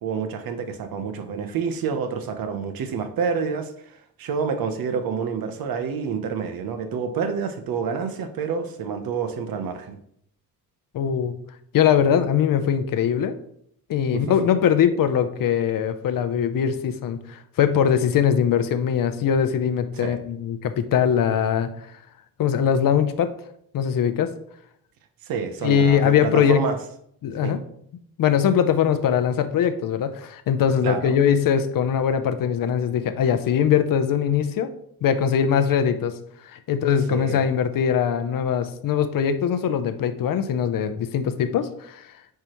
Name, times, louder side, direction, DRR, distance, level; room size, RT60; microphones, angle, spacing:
voice 1, 0.0-10.0 14.1-14.5 20.0-20.2 25.2-26.8 27.4-27.5 30.8-31.2 37.1-37.5, right 6 dB, 75° right, 8 dB, 0.9 m, -28 dB
voice 2, 10.9-11.3 11.7-13.4 13.9-21.7 22.4-23.3 23.7-24.3 25.6-26.6 27.2-27.6 28.2-34.7 35.0-36.2 36.5-42.0, left 8 dB, 65° left, 10 dB, 0.7 m, -21 dB
9.2 x 4.8 x 3.0 m, 0.70 s
cardioid pair, 135°, 36 cm